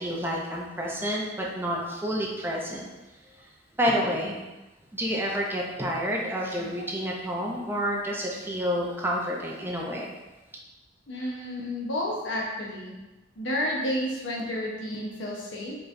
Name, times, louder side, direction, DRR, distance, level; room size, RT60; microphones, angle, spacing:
voice 1, 0.0-2.9 3.8-4.4 4.9-10.1, equal, 10° right, -2 dB, 0.5 m, -29 dB
voice 2, 11.1-12.9 13.4-15.8, left 1 dB, 90° left, -2 dB, 0.9 m, -31 dB
4.5 x 3.2 x 2.6 m, 1.1 s
head